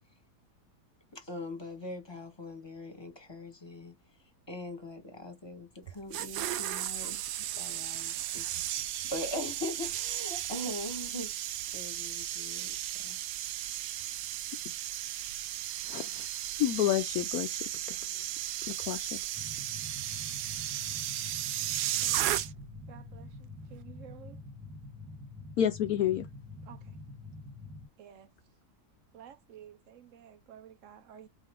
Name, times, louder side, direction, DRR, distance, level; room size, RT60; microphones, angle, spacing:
voice 1, 1.1-3.9 4.5-7.3 7.6-11.3 11.7-12.7 13.0-13.2, left 1 dB, 15° left, 1.5 m, -41 dB
sound 1, 5.9-22.8 23.1-23.4, right 12 dB, 85° right, 1.2 m, -35 dB
voice 2, 15.9-16.3 16.6-18.0 18.9-19.2 25.6-26.3, left 11 dB, 75° left, 1.0 m, -29 dB
sound 2, 19.3-27.9, left 2 dB, 5° right, 1.2 m, -46 dB
voice 3, 22.9-23.3 23.7-24.4 26.7-26.8 28.0-28.3 29.1-31.3, right 9 dB, 65° right, 0.8 m, -51 dB
4.5 x 3.1 x 3.6 m
omnidirectional pair, 1.7 m